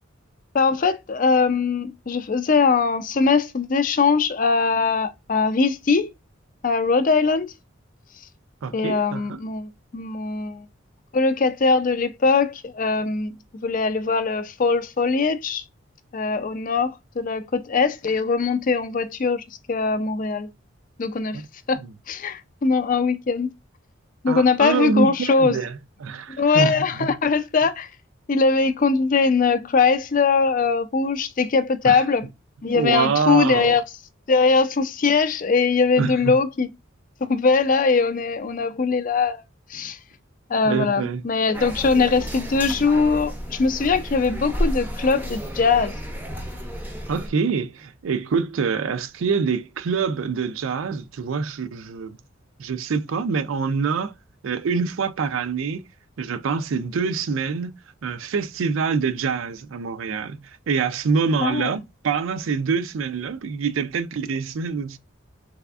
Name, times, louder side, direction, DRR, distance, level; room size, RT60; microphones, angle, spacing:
voice 1, 0.5-6.1 6.6-7.5 8.7-10.6 11.1-13.3 13.6-15.6 16.1-20.5 21.0-21.4 21.7-21.8 22.1-23.5 24.2-25.6 26.3-27.9 28.3-32.3 32.6-33.8 34.3-36.7 37.2-39.4 39.7-40.0 40.5-45.9 61.4-61.8, left 4 dB, 40° left, 0.4 m, -21 dB
voice 2, 8.6-9.4 21.3-21.5 21.8-21.9 24.3-27.1 31.8-32.0 32.7-33.8 36.0-36.4 40.6-41.2 47.1-52.2 52.6-54.1 54.4-55.8 56.2-57.7 58.0-65.0, right 5 dB, 75° right, 0.4 m, -25 dB
sound 1, 41.5-47.3, equal, 10° right, 0.5 m, -31 dB
3.4 x 3.3 x 2.3 m
head